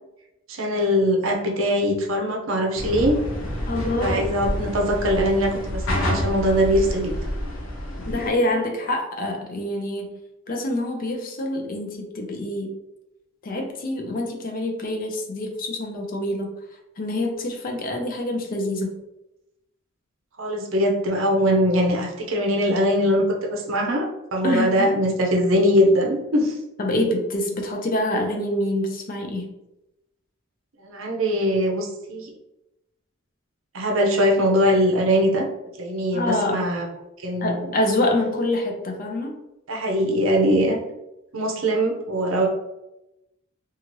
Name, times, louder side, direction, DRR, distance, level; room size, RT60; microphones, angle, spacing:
voice 1, 0.5-3.2 4.0-7.1 20.4-26.6 30.8-32.3 33.7-35.5 35.8-36.9 37.2-37.7 39.7-40.8 41.3-42.5, equal, 75° right, 1 dB, 0.6 m, -21 dB
sound 1, 2.8-8.3, equal, 80° left, 0.7 m, -28 dB
voice 2, 3.7-4.3 8.0-10.2 10.5-12.7 13.4-16.6 17.0-19.0 24.4-24.9 26.8-29.5 36.1-36.7 37.4-39.4, left 1 dB, 45° left, 2 dB, 0.5 m, -26 dB
2.8 x 2.4 x 2.9 m, 0.91 s
head